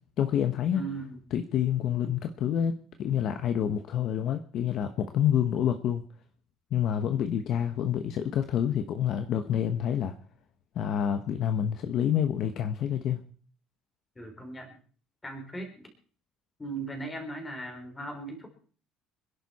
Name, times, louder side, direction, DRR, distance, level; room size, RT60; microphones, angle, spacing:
voice 1, 0.2-0.8 1.3-6.0 6.7-10.1 10.7-13.2, left 9 dB, 45° left, 8 dB, 1.0 m, -28 dB
voice 2, 0.7-1.2 2.0-2.2 14.2-14.8 15.2-15.9 16.6-18.5, right 2 dB, 10° left, 3 dB, 3.7 m, -38 dB
25.5 x 11.0 x 4.2 m, 0.42 s
cardioid pair, 170°, 0 cm